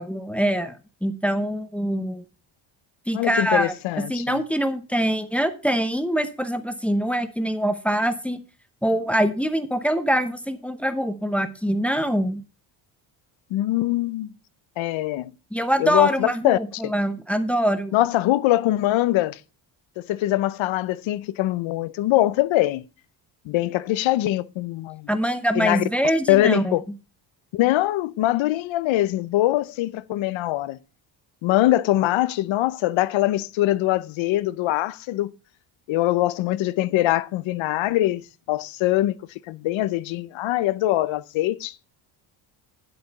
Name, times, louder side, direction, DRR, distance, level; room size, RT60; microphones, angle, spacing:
voice 1, 0.0-2.2 3.1-3.7 4.1-8.4 8.8-12.4 15.5-18.0 25.1-26.8, equal, 5° left, 0.7 m, -24 dB
voice 2, 3.1-4.4 13.5-14.3 14.8-15.3 15.8-16.9 17.9-19.4 20.0-22.8 23.5-25.1 25.6-25.8 26.3-26.8 27.5-30.8 31.4-35.3 35.9-39.2 39.5-41.7, left 15 dB, 80° left, 0.8 m, -23 dB
10.0 x 7.9 x 4.1 m
cardioid pair, 170°, 46 cm